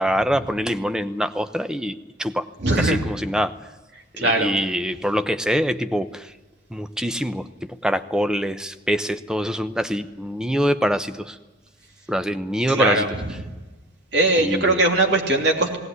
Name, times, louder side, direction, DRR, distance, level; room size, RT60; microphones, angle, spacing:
voice 1, 0.0-2.5 2.8-3.7 4.1-6.4 6.7-11.4 12.1-13.1 14.4-14.8, equal, 5° right, 10 dB, 0.7 m, -24 dB
voice 2, 2.6-3.0 4.2-4.5 12.7-13.1 14.1-15.8, right 2 dB, 60° right, 2 dB, 3.1 m, -20 dB
19.0 x 18.0 x 9.6 m, 1.2 s
head